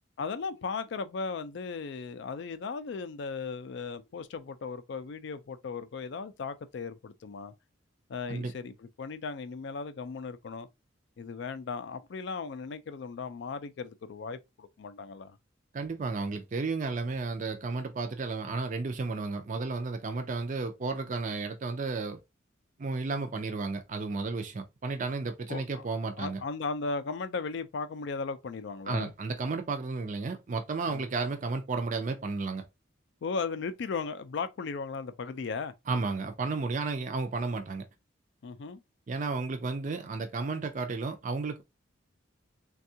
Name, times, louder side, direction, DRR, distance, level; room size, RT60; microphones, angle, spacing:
voice 1, 0.2-7.5 8.1-10.7 11.2-15.4 25.5-25.9 26.2-29.1 30.9-31.0 33.2-35.7 38.4-38.8, left 4 dB, 60° left, 0.3 m, -36 dB
voice 2, 15.7-22.2 22.8-26.4 28.9-32.6 35.9-37.8 39.1-41.6, right 3 dB, 40° right, 0.4 m, -33 dB
3.4 x 2.3 x 2.7 m
head